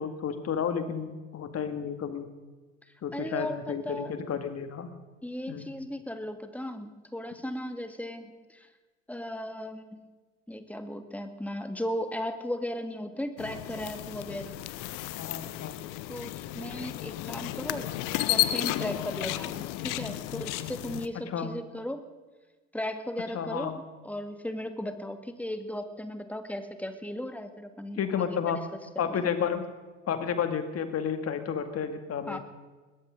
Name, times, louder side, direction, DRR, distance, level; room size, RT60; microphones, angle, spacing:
voice 1, 0.0-2.3 3.0-4.9 5.5-5.7 15.2-15.8 21.3-21.5 23.3-23.8 28.0-28.6 29.0-29.6 30.1-32.4, left 7 dB, 40° left, 8 dB, 2.3 m, -31 dB
voice 2, 3.1-4.1 5.2-8.7 9.1-10.1 10.5-14.6 16.1-17.9 18.3-22.0 22.7-28.6 29.0-29.3 32.3-32.4, left 1 dB, 5° left, 8 dB, 1.9 m, -36 dB
sound 1, 13.4-21.1, left 15 dB, 55° left, 1.0 m, -33 dB
21.5 x 18.0 x 3.8 m, 1.3 s
figure-of-eight pair, 60°, 38 cm